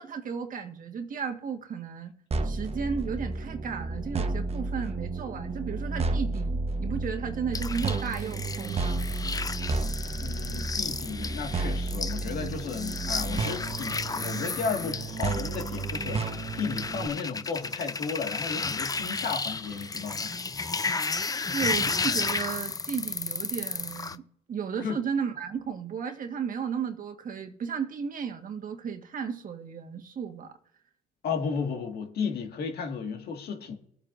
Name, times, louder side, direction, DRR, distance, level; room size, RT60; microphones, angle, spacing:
voice 1, 0.0-2.1 2.4-9.1 21.3-24.2 24.5-30.5, right 6 dB, 50° right, 1.6 m, -34 dB
sound 1, 2.3-17.1, right 3 dB, 35° right, 1.1 m, -32 dB
sound 2, 7.5-24.2, left 4 dB, 20° left, 0.6 m, -33 dB
voice 2, 10.2-20.3 24.8-25.0 31.2-33.8, left 5 dB, 65° left, 2.0 m, -34 dB
21.5 x 8.7 x 2.6 m
supercardioid pair, 75°, 18 cm